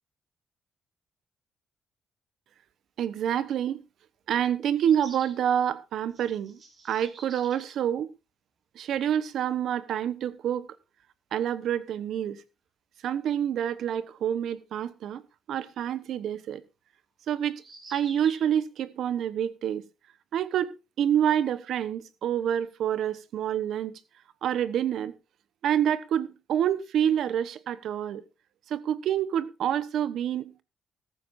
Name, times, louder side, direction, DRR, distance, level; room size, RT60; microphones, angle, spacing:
voice 1, 3.0-3.8 4.3-6.6 6.8-8.1 8.7-10.7 11.3-12.4 13.0-15.2 15.5-16.6 17.3-17.6 17.9-19.8 20.3-24.0 24.4-25.1 25.6-28.2 28.7-30.6, right 9 dB, 75° right, 1.0 m, -27 dB
sound 1, 4.8-5.4 6.1-7.8 9.0-9.1 9.3-9.4 11.8-11.9 15.0-15.1 17.5-18.5, right 3 dB, 50° right, 6.2 m, -48 dB
14.5 x 14.0 x 2.6 m
cardioid pair, 90°, 0 cm